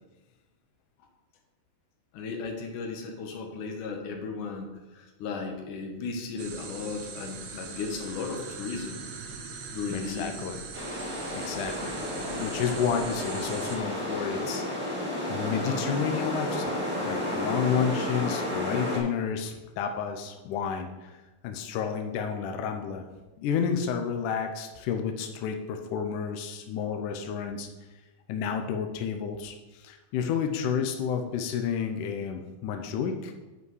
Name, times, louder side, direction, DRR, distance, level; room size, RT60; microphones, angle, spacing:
voice 1, 2.1-9.0 9.7-10.3, left 4 dB, 65° left, 3 dB, 2.4 m, -35 dB
sound 1, 6.4-13.8, right 5 dB, 75° right, 1.6 m, -41 dB
voice 2, 9.9-10.6 11.3-12.0 12.3-14.6 14.9-21.1 21.4-23.1 23.4-27.7 28.3-33.3, left 7 dB, 85° left, 4 dB, 1.8 m, -31 dB
sound 2, 10.7-19.0, left 1 dB, 5° right, 1.4 m, -32 dB
10.5 x 5.5 x 4.8 m, 1.1 s
omnidirectional pair, 4.5 m